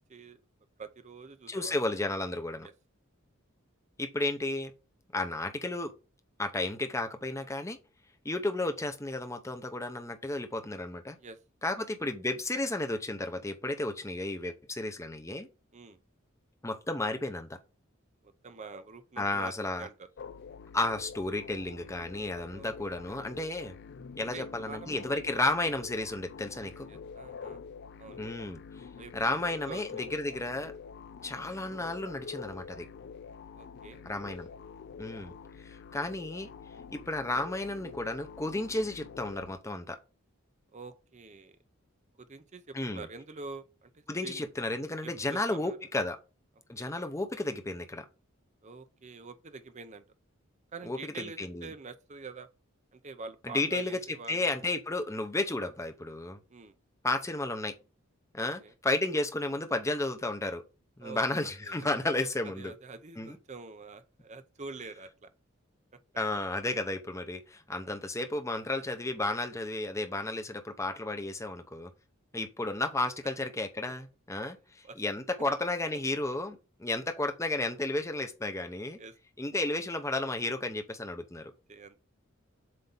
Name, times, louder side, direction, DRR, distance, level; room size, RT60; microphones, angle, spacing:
voice 1, 0.8-1.7 2.6-2.7 11.2-11.4 15.7-16.0 18.2-19.5 19.8-20.1 22.5-22.7 24.3-25.1 26.6-27.6 28.0-28.2 29.0-29.1 29.6-29.8 33.5-34.4 40.7-41.6 42.2-44.5 45.0-45.8 46.8-46.9 48.6-50.0 50.7-52.5 52.9-54.6 56.5-56.7 58.4-58.7 61.0-61.3 61.6-61.9 62.2-65.3 74.8-75.0 79.0-79.1 81.4-82.0, right 4 dB, 35° right, 0.7 m, -46 dB
voice 2, 1.5-2.7 4.0-4.7 5.1-5.9 6.4-7.8 8.2-11.2 11.6-15.5 16.6-17.6 19.2-19.9 20.7-23.7 24.2-26.9 28.2-28.6 29.1-30.7 31.2-32.9 34.0-34.5 35.0-35.3 35.6-36.5 36.9-40.0 42.7-43.1 44.1-46.2 46.7-48.1 50.9-51.7 53.4-54.0 54.3-56.4 57.0-57.7 58.3-60.6 61.0-62.7 63.2-63.4 66.2-71.9 72.3-74.6 75.0-79.0 79.4-81.5, left 2 dB, 15° left, 0.8 m, -33 dB
sound 1, 20.2-39.5, left 5 dB, 55° left, 0.4 m, -46 dB
7.7 x 2.8 x 5.4 m
head